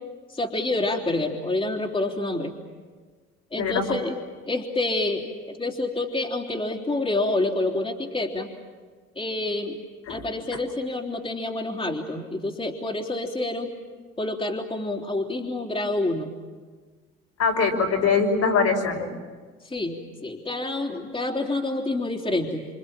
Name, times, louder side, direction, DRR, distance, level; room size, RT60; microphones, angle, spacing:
voice 1, 0.3-2.5 3.5-4.2 4.5-8.5 9.1-9.8 10.1-13.7 14.2-16.3 19.6-22.7, left 2 dB, 20° left, 0 dB, 3.5 m, -28 dB
voice 2, 17.4-19.1, left 5 dB, 60° left, 0 dB, 5.7 m, -22 dB
27.0 x 27.0 x 7.5 m, 1.5 s
hypercardioid pair, 65°, 30 cm